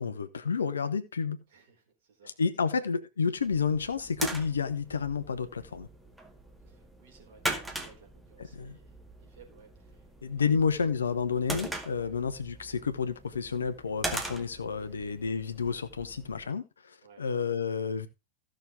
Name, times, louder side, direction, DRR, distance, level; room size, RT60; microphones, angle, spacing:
voice 1, 0.0-1.4 2.2-5.9 8.5-8.8 10.2-18.1, left 5 dB, 70° left, 1.0 m, -30 dB
voice 2, 1.5-2.7 6.7-10.6 12.0-12.2 14.8-15.0 17.0-17.2, right 6 dB, 55° right, 4.0 m, -59 dB
sound 1, 3.4-16.5, right 1 dB, 5° right, 2.0 m, -41 dB
15.0 x 6.5 x 3.7 m
figure-of-eight pair, 90°, 0 cm